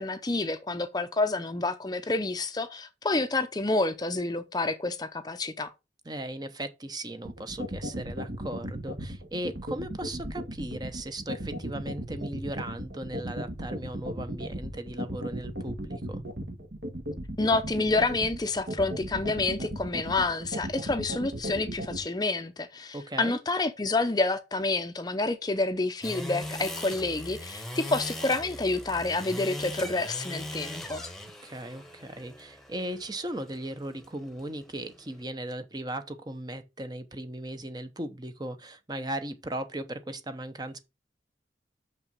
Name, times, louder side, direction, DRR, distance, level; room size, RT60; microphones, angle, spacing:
voice 1, 0.0-5.7 17.4-31.0, left 3 dB, 20° left, 0.6 m, -28 dB
voice 2, 6.0-16.2 22.9-23.4 31.4-40.8, right 1 dB, 20° right, 0.8 m, -37 dB
sound 1, 7.2-22.0, equal, 65° right, 1.8 m, -35 dB
sound 2, 26.0-35.2, left 1 dB, 5° left, 1.1 m, -40 dB
6.6 x 5.7 x 5.3 m
head